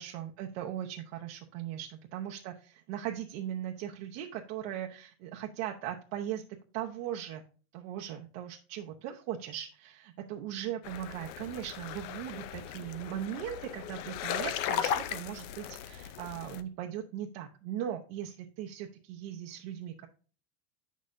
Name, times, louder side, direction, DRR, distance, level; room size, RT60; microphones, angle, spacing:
voice 1, 0.0-6.4 6.7-7.4 7.7-20.1, right 11 dB, 45° right, 1 dB, 0.9 m, -39 dB
sound 1, 10.8-16.6, left 10 dB, 45° left, 0.6 m, -37 dB
8.1 x 6.5 x 2.5 m, 0.39 s
supercardioid pair, 140°, 43 cm